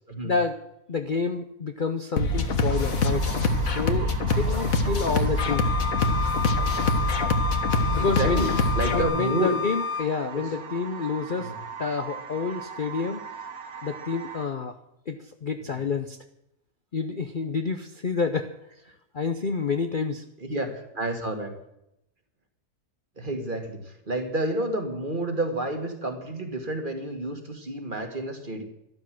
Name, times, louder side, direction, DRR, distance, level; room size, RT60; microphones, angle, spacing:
voice 1, 0.2-0.6 0.9-3.3 3.7-5.7 7.9-8.5 8.9-11.5 11.8-13.2 13.8-14.8 15.1-16.2 16.9-18.5 19.1-20.2, left 4 dB, 40° left, 7 dB, 0.8 m, -29 dB
sound 1, 2.2-9.0, left 2 dB, 60° left, 1.8 m, -24 dB
sound 2, 2.7-14.4, right 6 dB, 65° right, 1.9 m, -39 dB
Wind instrument woodwind instrument, 5.4-10.1, left 6 dB, 85° left, 1.3 m, -31 dB
voice 2, 6.5-7.1 8.0-9.6 10.3-10.5 11.4-11.6 15.7-15.8 20.4-21.5 23.2-28.6, right 1 dB, 30° right, 5 dB, 2.1 m, -30 dB
13.0 x 12.0 x 7.7 m, 0.83 s
omnidirectional pair, 1.6 m